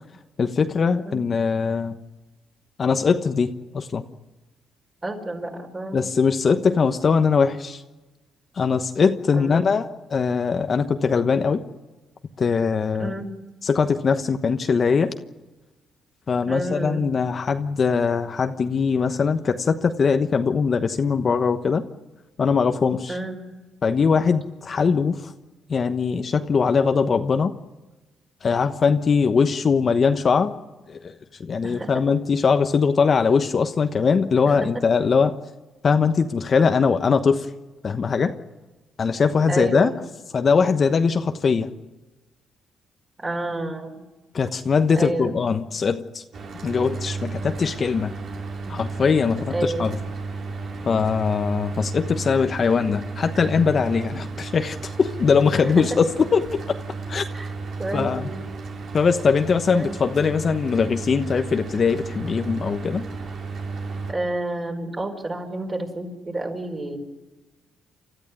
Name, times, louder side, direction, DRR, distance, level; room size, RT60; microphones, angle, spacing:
voice 1, 0.4-2.0 2.8-4.0 5.9-7.8 8.6-9.8 10.1-11.6 12.4-13.1 13.6-15.1 16.3-21.8 22.4-23.2 23.8-25.3 25.7-27.5 28.4-30.5 30.9-31.1 31.4-35.3 35.8-37.5 37.8-38.3 39.0-39.9 40.3-41.7 44.3-46.2 46.6-48.1 48.7-50.0 50.9-56.8 57.1-57.3 57.9-58.3 58.9-63.1, left 5 dB, 45° left, 7 dB, 1.1 m, -21 dB
voice 2, 5.0-6.0 9.3-9.7 13.0-13.3 16.5-17.1 23.1-23.4 31.6-32.0 34.5-34.8 39.5-40.0 43.2-44.0 45.0-45.4 48.6-48.7 49.5-50.0 55.6-56.0 57.3-57.5 57.8-58.5 59.6-59.9 64.1-67.0, right 2 dB, 25° right, 3 dB, 5.0 m, -30 dB
Mechanical fan, 46.3-64.1, right 4 dB, 60° right, 3.7 m, -33 dB
29.5 x 13.5 x 9.6 m, 1.2 s
cardioid pair, 90°, 0 cm